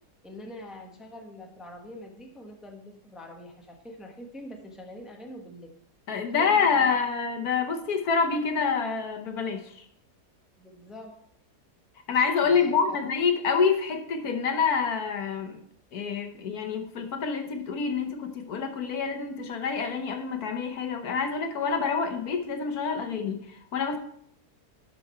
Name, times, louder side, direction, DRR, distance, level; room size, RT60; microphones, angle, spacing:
voice 1, 0.2-5.7 6.3-6.8 10.6-11.1 12.4-13.0, left 1 dB, ahead, 1 dB, 1.0 m, -44 dB
voice 2, 6.1-9.8 12.1-15.6 15.9-24.0, left 5 dB, 65° left, 6 dB, 1.4 m, -27 dB
12.0 x 5.9 x 4.4 m, 0.68 s
omnidirectional pair, 1.7 m